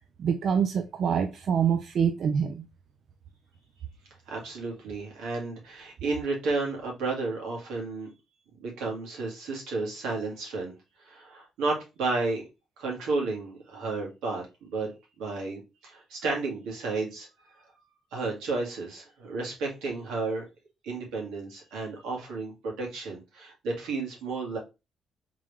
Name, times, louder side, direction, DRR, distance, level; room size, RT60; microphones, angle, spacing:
voice 1, 0.2-2.6, right 7 dB, 60° right, 0.4 m, -25 dB
voice 2, 4.3-8.1 8.6-10.7 11.0-12.4 12.8-14.9 15.2-17.3 18.1-20.4 20.8-24.6, right 3 dB, 90° right, 2.0 m, -32 dB
3.7 x 3.2 x 3.4 m
cardioid pair, 90°, 0 cm